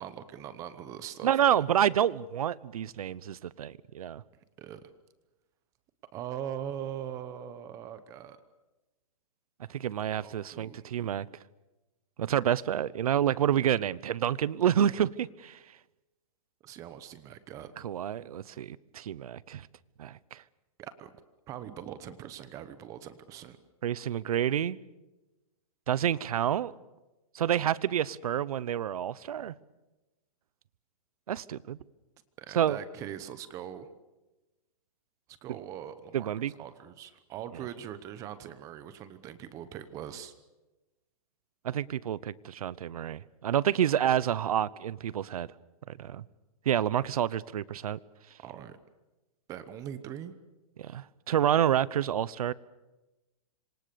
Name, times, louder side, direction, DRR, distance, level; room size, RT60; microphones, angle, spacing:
voice 1, 0.0-1.6 4.6-4.8 6.1-8.4 10.2-10.9 16.6-17.7 20.8-21.1 21.5-23.6 32.4-33.9 35.4-36.3 36.6-40.3 48.4-48.8 49.5-50.3, right 10 dB, 15° right, 0.9 m, -41 dB
voice 2, 1.2-4.2 9.7-11.3 12.2-15.6 17.8-19.7 20.0-20.4 23.8-24.8 25.9-26.7 27.3-29.5 31.3-31.8 32.5-32.8 36.1-36.5 41.6-45.5 45.9-46.2 46.7-48.0 50.8-52.5, right 10 dB, 75° right, 0.9 m, -28 dB
26.5 x 25.0 x 6.9 m
hypercardioid pair, 175°, 19 cm